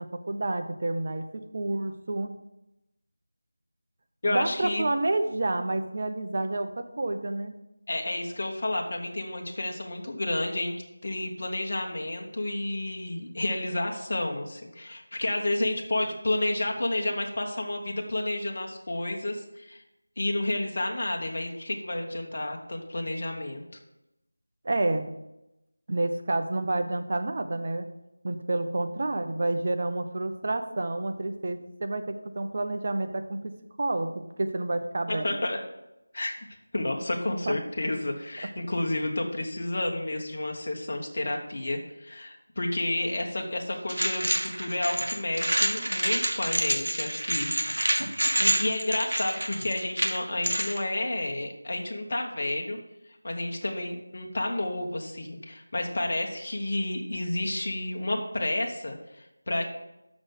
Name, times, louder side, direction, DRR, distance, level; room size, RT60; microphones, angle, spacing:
voice 1, 0.0-2.3 4.2-7.5 24.6-25.1 25.9-27.9 28.2-33.5 33.8-34.1 34.4-35.4 37.5-37.6, right 2 dB, 40° right, 7 dB, 0.7 m, -29 dB
voice 2, 4.2-4.8 7.9-10.8 11.0-19.8 20.2-23.6 35.1-35.6 36.1-36.4 36.7-48.0 48.4-52.8 53.2-59.7, left 1 dB, 45° left, 2 dB, 1.3 m, -30 dB
sound 1, 43.9-50.8, right 1 dB, 75° right, 1.4 m, -27 dB
6.3 x 6.2 x 6.5 m, 0.91 s
figure-of-eight pair, 170°, 0 cm